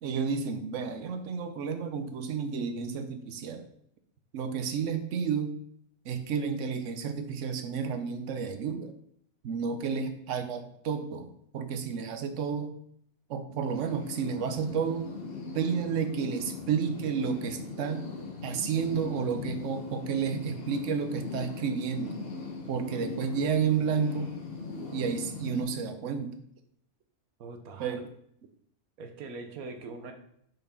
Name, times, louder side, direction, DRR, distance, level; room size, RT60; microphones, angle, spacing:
voice 1, 0.0-3.6 4.3-5.5 6.0-8.9 9.4-12.7 13.3-15.1 15.5-18.1 18.4-22.2 22.7-24.3 24.9-26.3 27.8-28.0, right 6 dB, 60° right, 9 dB, 1.0 m, -31 dB
sound 1, 13.7-25.6, left 4 dB, 45° left, 1.2 m, -40 dB
voice 2, 27.4-28.0 29.0-30.1, right 3 dB, 80° right, 6 dB, 1.3 m, -42 dB
6.5 x 4.3 x 4.4 m, 0.70 s
omnidirectional pair, 1.5 m